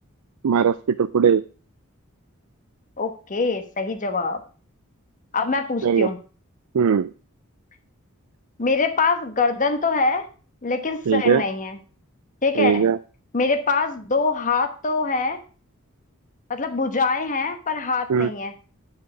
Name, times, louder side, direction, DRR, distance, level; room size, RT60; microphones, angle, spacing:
voice 1, 0.4-1.4 5.8-6.1 6.7-7.1 11.1-11.4 12.6-13.0 18.1-18.3, right 7 dB, 85° right, 13 dB, 0.4 m, -19 dB
voice 2, 3.0-4.4 5.3-6.2 8.6-10.3 10.6-11.8 12.4-12.8 13.3-15.4 16.5-18.5, left 4 dB, 35° left, 7 dB, 1.1 m, -24 dB
9.5 x 5.0 x 5.8 m, 0.38 s
head